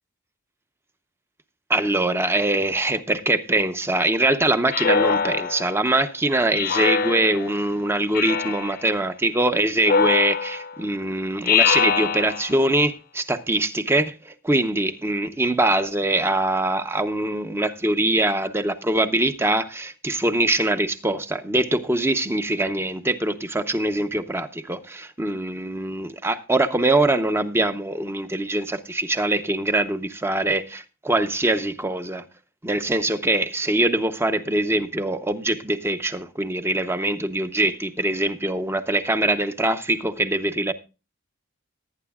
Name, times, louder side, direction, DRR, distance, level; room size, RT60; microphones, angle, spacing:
voice 1, 1.7-32.2 32.6-40.7, right 2 dB, 10° right, 0.7 m, -23 dB
Speech synthesizer, 4.7-5.8 6.5-7.6 8.1-8.8 9.8-10.7 11.4-12.6, left 6 dB, 40° left, 0.6 m, -23 dB
18.0 x 9.7 x 2.3 m
head